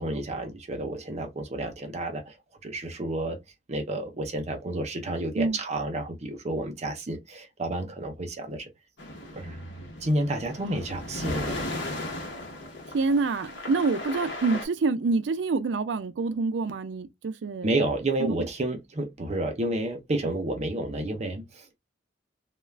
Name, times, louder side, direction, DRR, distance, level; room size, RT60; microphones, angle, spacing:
voice 1, 0.0-2.3 2.6-3.4 3.7-8.6 9.3-9.7 10.0-11.7 17.6-21.8, right 1 dB, 40° right, 0.6 m, -30 dB
sound 1, 9.0-14.7, left 1 dB, 80° left, 0.8 m, -36 dB
voice 2, 12.9-17.8 18.2-18.3, right 3 dB, 80° right, 0.4 m, -27 dB
2.4 x 2.2 x 3.2 m
head